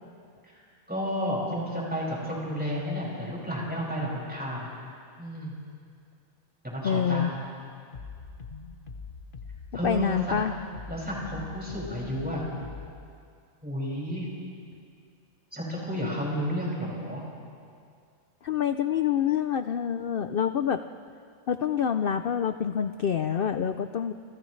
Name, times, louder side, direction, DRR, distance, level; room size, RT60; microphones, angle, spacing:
voice 1, 0.9-4.7 5.2-5.5 6.6-7.4 9.7-10.4 10.9-12.5 13.6-14.3 15.5-17.2, equal, 5° right, -5 dB, 6.1 m, -31 dB
voice 2, 6.8-7.3 9.8-10.5 18.4-20.8 21.5-24.1, left 8 dB, 55° left, 9 dB, 0.6 m, -26 dB
sound 1, 7.9-12.9, left 5 dB, 40° left, 1.2 m, -42 dB
29.5 x 28.5 x 3.3 m, 2.3 s
omnidirectional pair, 1.5 m